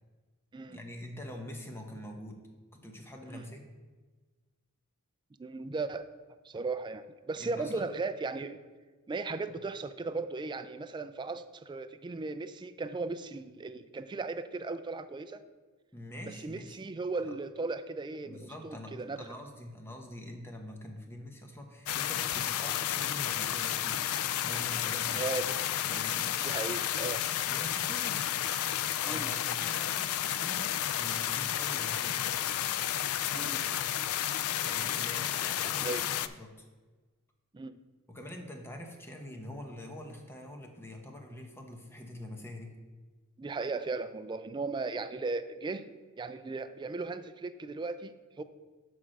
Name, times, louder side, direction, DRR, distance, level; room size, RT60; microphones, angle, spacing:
voice 1, 0.7-2.4 2.7-3.6 7.4-7.8 9.5-9.6 15.9-16.8 17.2-17.3 18.2-24.1 24.4-25.4 25.8-26.3 27.5-28.3 28.8-32.2 34.6-36.7 38.1-42.8, left 1 dB, 10° left, 3 dB, 0.9 m, -45 dB
voice 2, 5.4-6.1 6.4-8.6 9.1-15.4 16.3-19.2 25.1-25.6 26.4-27.2 29.1-29.3 33.3-33.6 35.8-36.0 37.5-37.7 43.4-45.9 46.2-48.4, right 3 dB, 20° right, 11 dB, 0.3 m, -36 dB
sound 1, 21.9-36.3, left 11 dB, 70° left, 0.3 m, -32 dB
5.9 x 4.7 x 6.4 m, 1.3 s
head